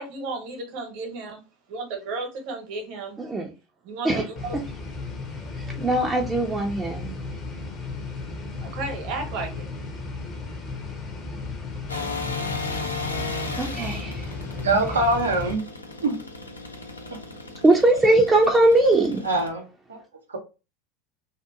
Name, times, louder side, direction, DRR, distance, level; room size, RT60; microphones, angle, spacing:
voice 1, 0.0-1.4 1.7-3.2 3.8-4.6 8.6-9.7, right 3 dB, 55° right, 0.9 m, -33 dB
voice 2, 3.2-3.5 4.0-4.2 5.6-7.2 13.6-14.3 14.7-14.8 17.6-19.2, right 2 dB, 15° right, 0.5 m, -20 dB
sound 1, 4.4-15.5, left 3 dB, 40° left, 0.7 m, -35 dB
sound 2, 11.9-19.5, left 3 dB, 90° left, 0.5 m, -35 dB
voice 3, 14.5-15.6 16.0-16.2 17.1-17.2 19.2-20.0 20.3-20.4, right 2 dB, 80° right, 0.6 m, -24 dB
2.7 x 2.4 x 2.4 m
figure-of-eight pair, 80°, 0 cm